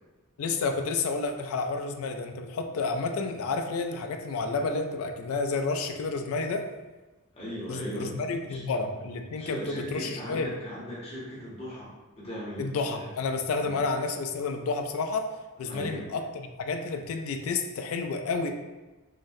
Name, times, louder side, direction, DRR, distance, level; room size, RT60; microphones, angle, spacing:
voice 1, 0.4-6.7 7.7-10.5 12.6-15.3 15.6-18.5, left 4 dB, 70° left, 5 dB, 0.3 m, -30 dB
voice 2, 7.3-8.1 8.5-8.6 9.4-13.1 13.6-13.8 15.6-16.1, equal, 30° left, -7 dB, 0.7 m, -38 dB
3.8 x 2.1 x 2.6 m, 1.2 s
head